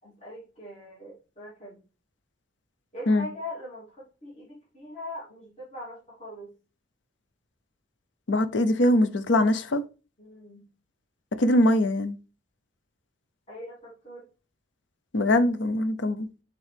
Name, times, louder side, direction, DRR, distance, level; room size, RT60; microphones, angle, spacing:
voice 1, 0.0-1.8 2.9-6.5 10.2-10.7 13.5-14.2, left 1 dB, 35° left, 3.0 m, -41 dB
voice 2, 8.3-9.8 11.4-12.2 15.1-16.3, left 1 dB, 85° left, 0.7 m, -22 dB
7.2 x 3.8 x 3.4 m
head